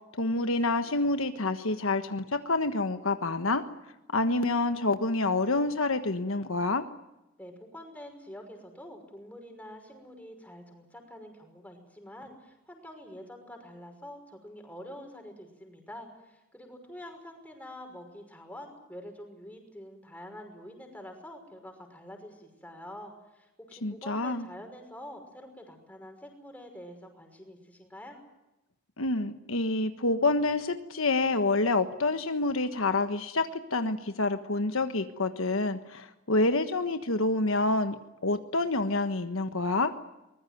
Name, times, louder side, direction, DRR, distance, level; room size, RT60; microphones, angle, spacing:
voice 1, 0.2-3.6 4.1-6.8 23.8-24.5 29.0-39.9, left 2 dB, 70° left, 8 dB, 1.4 m, -27 dB
voice 2, 7.4-28.2, left 1 dB, 5° left, 4 dB, 5.9 m, -46 dB
24.0 x 21.0 x 9.3 m, 0.95 s
head